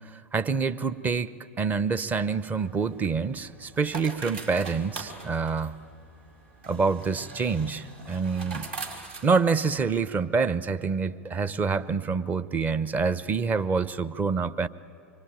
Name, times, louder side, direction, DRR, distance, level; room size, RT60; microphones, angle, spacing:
voice 1, 0.0-5.8 6.7-8.7 9.2-14.7, right 5 dB, 20° right, 15 dB, 0.9 m, -27 dB
sound 1, 2.4-10.1, right 3 dB, 60° right, 4.7 m, -42 dB
25.5 x 24.0 x 9.1 m, 2.6 s
figure-of-eight pair, 90°, 8 cm